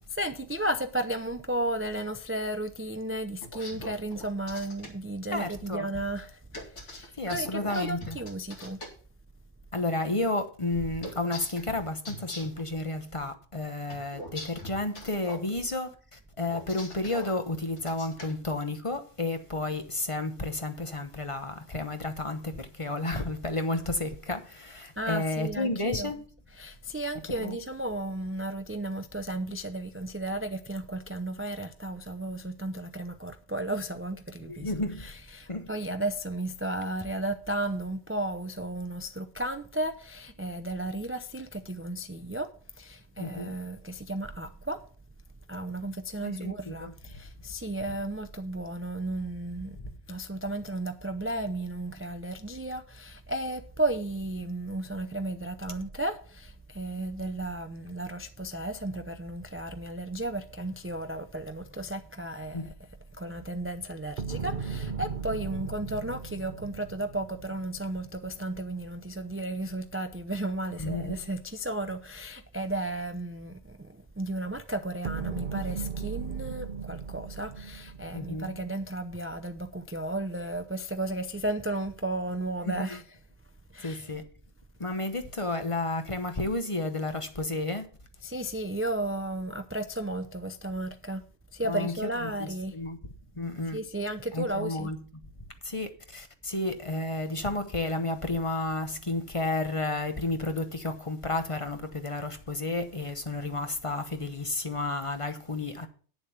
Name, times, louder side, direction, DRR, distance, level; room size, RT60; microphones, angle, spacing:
voice 1, 0.1-6.4 6.9-8.8 25.0-26.1 26.6-34.7 35.0-42.5 42.8-44.8 45.5-49.8 50.1-62.7 63.2-83.0 83.7-84.1 88.2-91.2 91.5-92.8 93.7-94.9, right 1 dB, 15° right, 0.4 m, -34 dB
sound 1, 3.4-4.9 6.5-8.9 11.0-12.6 13.9-15.5 16.5-17.3 17.8-18.3, left 1 dB, 70° left, 2.7 m, -41 dB
voice 2, 5.3-5.9 7.2-8.2 9.7-26.2 27.4-27.6 34.5-35.0 35.5-35.7 43.2-43.5 46.2-46.9 62.5-62.7 70.8-71.1 78.1-78.6 82.6-83.0 83.8-84.2 84.8-87.9 91.6-93.0 93.4-93.8 94.3-95.2 95.6-105.9, left 2 dB, 30° left, 1.0 m, -32 dB
sound 2, 64.2-68.5 75.0-78.8, right 6 dB, 45° right, 0.9 m, -37 dB
9.5 x 7.1 x 5.9 m
omnidirectional pair, 1.3 m